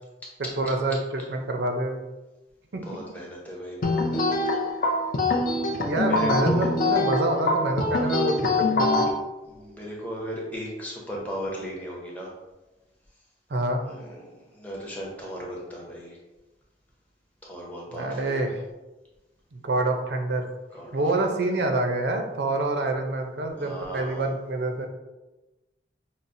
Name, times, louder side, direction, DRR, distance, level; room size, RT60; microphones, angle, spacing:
voice 1, 0.6-2.0 2.7-2.8 5.8-9.1 13.5-13.8 17.9-18.5 19.5-20.5 20.9-24.9, right 2 dB, 70° right, 4 dB, 0.5 m, -27 dB
voice 2, 2.8-4.4 6.0-6.7 7.8-8.2 9.4-12.3 13.8-16.2 17.4-18.4 20.7-21.0 21.5-21.6 23.6-24.3, equal, 10° left, -3 dB, 0.7 m, -36 dB
sound 1, 3.8-9.1, left 2 dB, 50° left, 0.5 m, -24 dB
5.5 x 2.0 x 2.5 m, 1.1 s
head